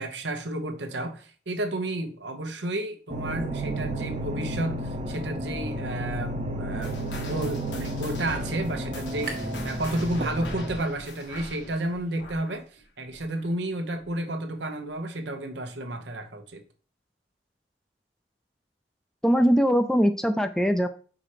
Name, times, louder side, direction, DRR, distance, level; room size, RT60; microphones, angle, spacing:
voice 1, 0.0-16.6, right 1 dB, 85° right, 6 dB, 1.0 m, -32 dB
sound 1, 3.1-10.8, right 1 dB, 35° right, 0.8 m, -32 dB
sound 2, 6.8-13.7 13.9-14.3 14.9-15.0 15.7-15.8, left 2 dB, 85° left, 1.6 m, -43 dB
sound 3, 9.3-9.7 10.0-10.9, right 3 dB, 60° right, 1.3 m, -38 dB
voice 2, 19.2-20.9, equal, 5° left, 9 dB, 0.4 m, -21 dB
5.0 x 4.2 x 4.9 m, 0.40 s
head